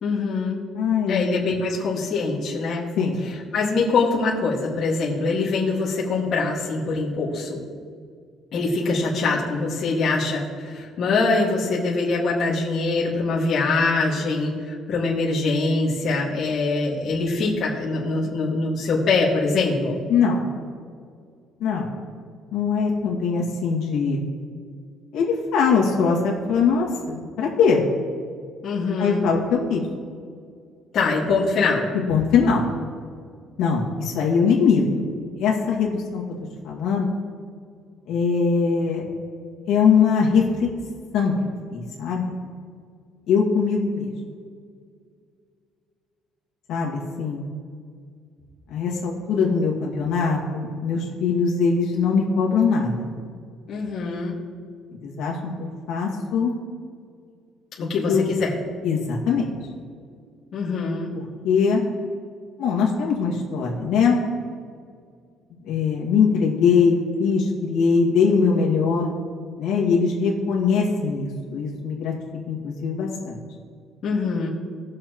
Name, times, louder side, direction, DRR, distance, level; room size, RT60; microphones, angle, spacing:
voice 1, 0.0-0.6 1.1-2.9 3.5-7.6 8.5-20.0 28.6-29.2 30.9-31.9 53.7-54.4 57.8-58.5 60.5-61.1 74.0-74.5, left 3 dB, 40° left, -6 dB, 1.9 m, -23 dB
voice 2, 0.7-1.3 3.0-3.2 20.1-20.4 21.6-21.9 22.5-24.2 25.1-27.8 29.0-29.8 32.1-32.7 33.6-34.8 35.4-36.2 36.6-37.1 38.1-39.1 39.7-40.7 41.1-41.3 41.7-42.3 43.3-44.1 46.7-47.5 48.7-53.1 55.0-56.5 58.1-58.3 58.8-59.5 61.4-61.8 62.6-64.2 65.7-69.1 69.6-72.1 72.5-73.4, left 5 dB, 70° left, -3 dB, 2.0 m, -21 dB
19.0 x 6.7 x 3.1 m, 2.1 s
cardioid pair, 170°, 0 cm